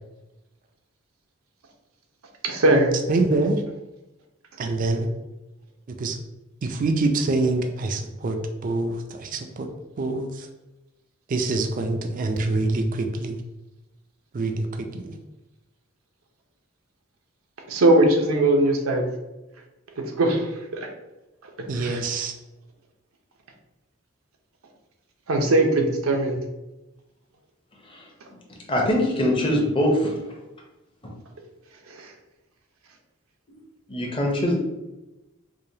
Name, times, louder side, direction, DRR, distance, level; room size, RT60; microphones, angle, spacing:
voice 1, 2.4-2.9 17.7-19.0 20.0-20.9 21.6-22.0 25.3-26.4 31.9-32.1, right 1 dB, 90° right, 2 dB, 0.7 m, -20 dB
voice 2, 3.1-3.6 4.6-5.1 6.0-6.2 6.6-9.7 10.0-10.5 11.3-13.4 14.3-15.2 21.7-22.3, right 2 dB, 40° right, 5 dB, 0.4 m, -25 dB
voice 3, 28.7-30.4 31.0-31.1 33.9-34.6, left 1 dB, 25° left, 0 dB, 0.7 m, -23 dB
4.8 x 2.2 x 2.7 m, 1.0 s
head